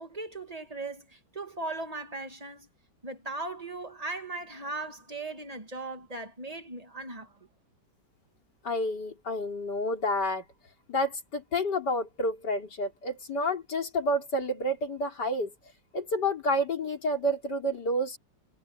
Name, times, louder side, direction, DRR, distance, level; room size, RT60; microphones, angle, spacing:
voice 1, 0.0-2.7 3.0-7.3, right 2 dB, 20° right, 1.9 m, -38 dB
voice 2, 8.6-10.4 10.9-15.5 15.9-18.2, left 1 dB, 65° left, 4.3 m, -29 dB
omnidirectional pair, 2.0 m